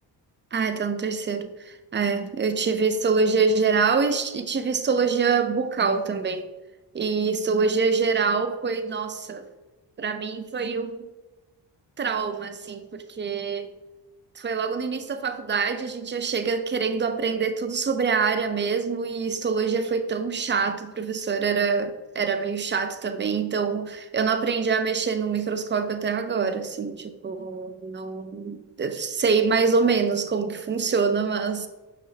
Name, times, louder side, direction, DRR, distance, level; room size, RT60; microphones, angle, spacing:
voice 1, 0.5-6.5 6.9-9.5 10.0-11.1 12.0-13.7 14.4-31.7, right 5 dB, 25° right, 0.5 m, -25 dB
5.5 x 3.1 x 2.8 m
supercardioid pair, 40°, 48 cm